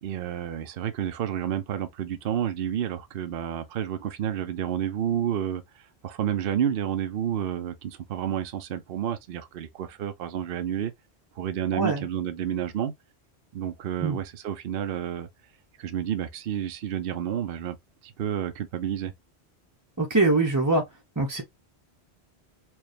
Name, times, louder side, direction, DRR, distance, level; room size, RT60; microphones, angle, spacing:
voice 1, 0.0-10.9 11.4-12.9 13.5-15.3 15.8-17.8 18.0-19.1, right 9 dB, 60° right, 0.8 m, -30 dB
voice 2, 11.7-12.0 14.0-14.2 20.0-20.8 21.2-21.4, right 2 dB, 20° right, 0.7 m, -23 dB
4.4 x 2.3 x 3.2 m
omnidirectional pair, 1.1 m